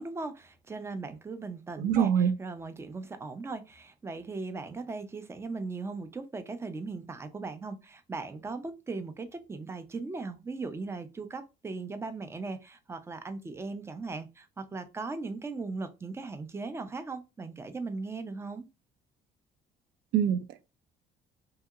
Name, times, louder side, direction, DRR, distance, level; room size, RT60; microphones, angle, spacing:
voice 1, 0.0-18.7, right 3 dB, 15° right, 0.4 m, -38 dB
voice 2, 1.8-2.3 20.1-20.7, right 8 dB, 75° right, 0.4 m, -25 dB
2.8 x 2.7 x 2.3 m
cardioid pair, 110°, 17 cm